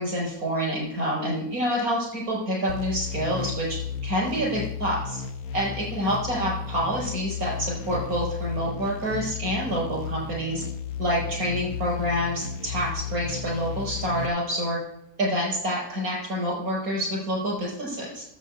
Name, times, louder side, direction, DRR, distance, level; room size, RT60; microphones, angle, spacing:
voice 1, 0.0-3.7 4.0-5.2 5.5-10.6 11.0-14.8 15.2-18.2, equal, 85° right, -3 dB, 5.7 m, -27 dB
sound 1, 2.7-14.3, left 7 dB, 80° left, 1.2 m, -34 dB
9.1 x 7.7 x 8.1 m, 0.78 s
omnidirectional pair, 1.5 m